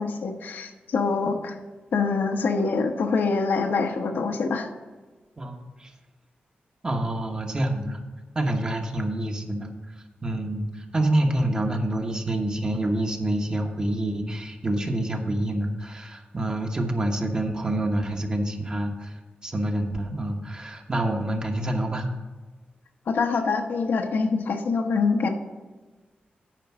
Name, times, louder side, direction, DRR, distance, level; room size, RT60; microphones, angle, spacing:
voice 1, 0.0-1.5 1.9-4.7 23.1-25.3, left 4 dB, 75° left, 4 dB, 1.0 m, -25 dB
voice 2, 5.4-5.9 6.8-8.0 8.3-9.7 10.2-22.0, right 1 dB, 25° right, 3 dB, 1.1 m, -27 dB
9.1 x 5.2 x 6.0 m, 1.3 s
wide cardioid pair, 130°, 3 cm